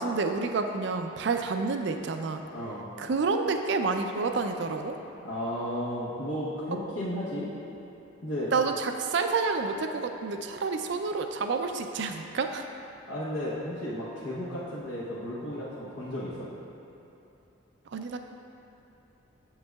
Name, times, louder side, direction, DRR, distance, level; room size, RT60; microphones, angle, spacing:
voice 1, 0.0-2.4 3.0-5.0 8.5-12.7 17.9-18.2, right 4 dB, 55° right, 6 dB, 0.4 m, -29 dB
voice 2, 2.5-2.9 5.2-7.5 8.2-8.5 13.1-16.5, equal, 85° left, -9 dB, 1.0 m, -34 dB
7.8 x 7.3 x 2.3 m, 2.9 s
head